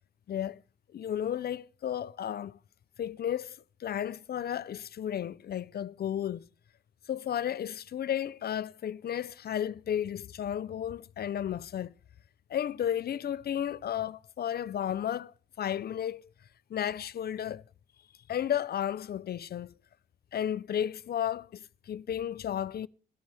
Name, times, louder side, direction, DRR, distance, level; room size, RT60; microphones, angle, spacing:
voice 1, 0.3-0.6 0.9-2.6 3.0-6.5 7.1-11.9 12.5-16.2 16.7-17.6 18.3-19.7 20.3-22.9, left 10 dB, 50° left, 0.7 m, -33 dB
21.5 x 12.5 x 3.5 m
cardioid pair, 90°, 20 cm